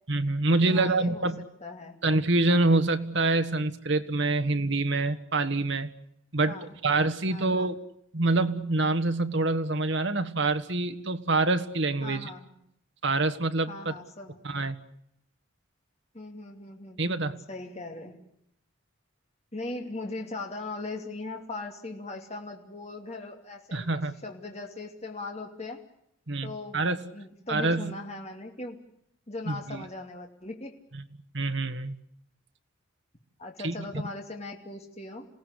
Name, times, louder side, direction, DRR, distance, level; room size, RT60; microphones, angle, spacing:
voice 1, 0.1-1.4 2.0-5.9 6.3-7.8 8.1-12.3 13.0-13.9 14.4-14.8 17.0-17.4 23.7-24.1 26.3-27.0 27.5-27.9 29.5-29.8 30.9-31.0 31.3-32.0 33.6-33.7, right 2 dB, 60° right, 9 dB, 1.5 m, -26 dB
voice 2, 0.6-1.3 1.6-2.0 6.5-6.8 7.3-7.7 12.0-12.6 13.7-14.4 16.1-17.0 17.5-18.2 19.5-23.9 24.2-25.8 26.4-28.8 29.3-30.7 33.4-35.3, left 2 dB, 30° left, 2 dB, 2.7 m, -39 dB
27.5 x 17.5 x 9.9 m, 0.74 s
head